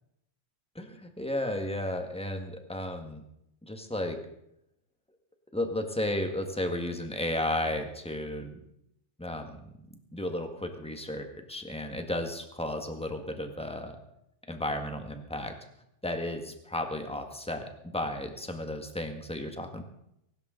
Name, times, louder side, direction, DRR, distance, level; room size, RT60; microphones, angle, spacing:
voice 1, 0.7-3.2 3.6-4.2 5.5-8.6 9.2-9.6 10.1-14.0 14.5-15.5 16.0-19.8, left 1 dB, 5° left, 5 dB, 0.8 m, -33 dB
23.5 x 12.5 x 3.9 m, 0.79 s
omnidirectional pair, 3.3 m